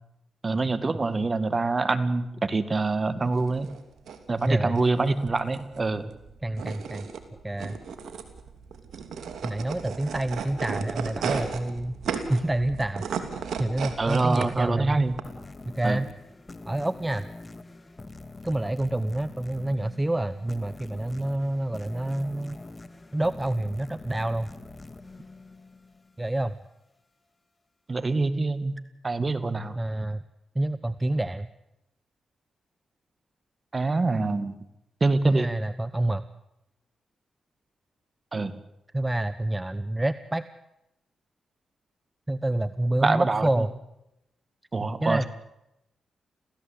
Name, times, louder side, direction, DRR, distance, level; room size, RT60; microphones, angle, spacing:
voice 1, 0.4-3.7 4.3-6.1 14.0-15.2 15.8-16.0 27.9-28.7 29.0-29.8 33.7-34.6 35.0-35.5 38.3-38.5 43.0-43.7 44.7-45.3, right 3 dB, 35° right, 13 dB, 2.2 m, -25 dB
sound 1, 3.3-15.2, right 6 dB, 75° right, 3.0 m, -35 dB
voice 2, 6.4-7.1 7.4-7.8 9.4-11.9 12.3-13.0 13.6-15.0 15.7-16.1 16.7-17.2 18.4-22.6 23.1-24.5 26.2-26.6 29.8-30.2 30.5-31.5 35.2-36.2 38.9-40.4 42.3-43.7 45.0-45.3, right 1 dB, 15° right, 14 dB, 1.0 m, -27 dB
sound 2, 15.2-26.4, left 2 dB, 30° left, 2.1 m, -44 dB
27.5 x 16.0 x 8.6 m, 0.87 s
cardioid pair, 60°, 0 cm